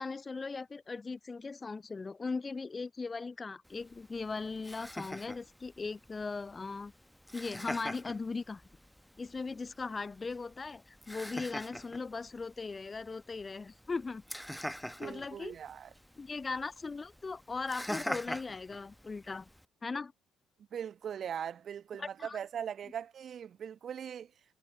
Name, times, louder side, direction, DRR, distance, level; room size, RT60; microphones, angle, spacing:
voice 1, 0.0-6.9 7.3-8.6 9.2-14.2 15.0-15.6 16.2-19.5 19.8-20.1 22.0-22.4, left 4 dB, 25° left, 0.4 m, -39 dB
Laughter, 3.7-19.7, equal, 5° left, 1.0 m, -45 dB
voice 2, 15.0-15.9 20.7-24.3, right 8 dB, 45° right, 1.1 m, -40 dB
figure-of-eight pair, 50°, 0 cm